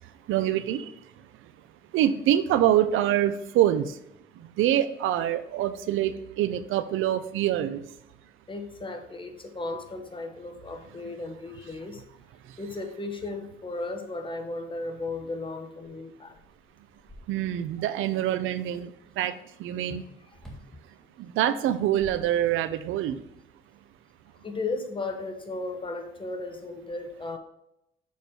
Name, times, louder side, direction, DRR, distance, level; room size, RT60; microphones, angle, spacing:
voice 1, 0.3-0.9 1.9-4.0 4.3-7.8 12.4-12.6 17.3-20.0 21.2-23.2, right 11 dB, 90° right, 13 dB, 0.6 m, -25 dB
voice 2, 8.5-12.0 12.6-16.4 19.9-20.0 20.3-20.4 24.4-27.4, left 3 dB, 25° left, 5 dB, 1.1 m, -35 dB
sound 1, 16.3-17.8 20.3-20.8 21.6-22.8, equal, ahead, 1.8 m, -49 dB
6.9 x 4.5 x 4.7 m, 0.80 s
cardioid pair, 90°, 20 cm